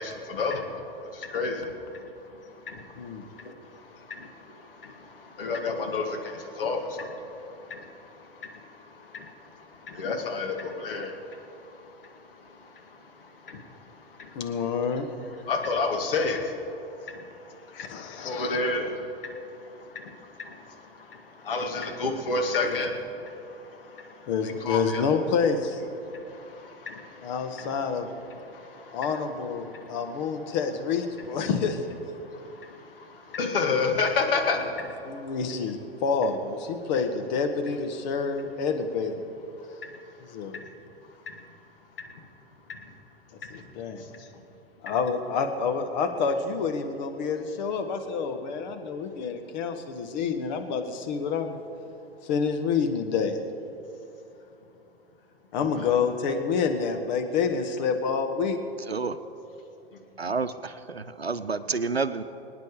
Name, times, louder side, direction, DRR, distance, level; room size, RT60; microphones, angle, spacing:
voice 1, 0.0-14.9 15.2-25.0 26.0-29.3 29.6-30.6 32.2-35.3 39.6-40.7 41.0-41.5 42.0-42.2 42.7-42.9 43.4-43.7 44.0-44.2 44.9-45.0 55.7-55.9 60.2-60.3, left 3 dB, 65° left, 3 dB, 2.2 m, -33 dB
voice 2, 14.3-15.1 17.7-18.6 22.6-22.8 24.3-25.8 27.2-28.1 28.9-31.8 35.0-39.2 40.3-40.6 43.5-44.3 44.8-51.6 52.2-53.4 55.5-58.6, left 5 dB, 45° left, 6 dB, 1.6 m, -28 dB
voice 3, 58.9-59.2 60.2-62.2, right 4 dB, 90° right, 12 dB, 0.7 m, -29 dB
24.5 x 9.5 x 5.0 m, 2.8 s
figure-of-eight pair, 95°, 30 cm